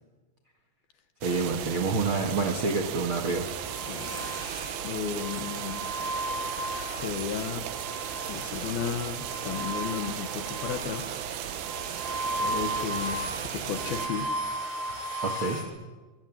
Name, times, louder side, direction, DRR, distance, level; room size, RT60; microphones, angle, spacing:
voice 1, 1.2-3.5 15.2-15.6, right 4 dB, 55° right, 5 dB, 1.5 m, -28 dB
sound 1, 1.2-14.1, right 11 dB, 90° right, 3.9 m, -36 dB
sound 2, 3.2-15.6, right 1 dB, 30° right, 6.4 m, -35 dB
voice 2, 3.9-4.4 4.8-5.9 7.0-7.7 8.3-11.2 12.4-14.3, left 8 dB, 65° left, 9 dB, 2.9 m, -34 dB
24.0 x 23.0 x 9.7 m, 1.3 s
omnidirectional pair, 5.4 m